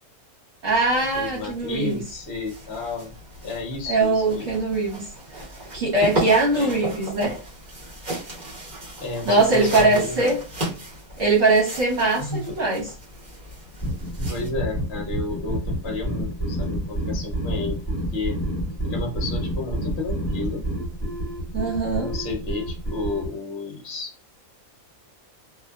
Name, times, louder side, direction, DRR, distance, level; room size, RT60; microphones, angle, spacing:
voice 1, 0.6-2.0 3.9-5.1 5.7-7.3 9.2-10.4 11.2-12.9 21.5-22.1, right 3 dB, 65° right, -4 dB, 1.2 m, -21 dB
sound 1, 0.7-14.5, right 1 dB, 35° right, 1.1 m, -35 dB
voice 2, 1.1-3.1 3.4-4.5 6.5-6.8 9.0-10.3 12.2-12.6 14.3-18.4 18.8-20.6 22.0-24.1, left 3 dB, 60° left, 1 dB, 0.8 m, -32 dB
sound 2, 13.8-23.3, right 1 dB, 20° left, 1.5 m, -29 dB
2.5 x 2.4 x 2.2 m, 0.35 s
omnidirectional pair, 1.5 m